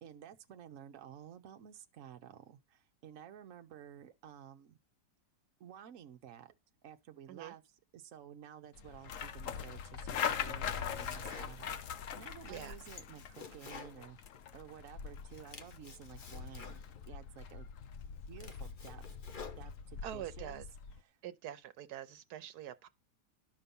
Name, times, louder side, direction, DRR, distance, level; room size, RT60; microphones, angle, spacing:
voice 1, 0.0-4.8 5.6-6.5 6.8-7.6 7.9-14.2 14.5-17.7 18.3-19.0 19.6-20.6 21.0-21.2, right 9 dB, 60° right, 1.2 m, -53 dB
sound 1, 8.8-21.0, left 7 dB, 65° left, 1.1 m, -42 dB
Domestic sounds home sounds, 10.3-11.9 12.2-14.8 15.1-17.1 17.7-17.8 18.2-20.1, left 5 dB, 35° left, 1.0 m, -52 dB
voice 2, 20.0-20.6 21.2-22.9, right 11 dB, 85° right, 1.3 m, -45 dB
12.0 x 5.7 x 5.4 m
omnidirectional pair, 1.6 m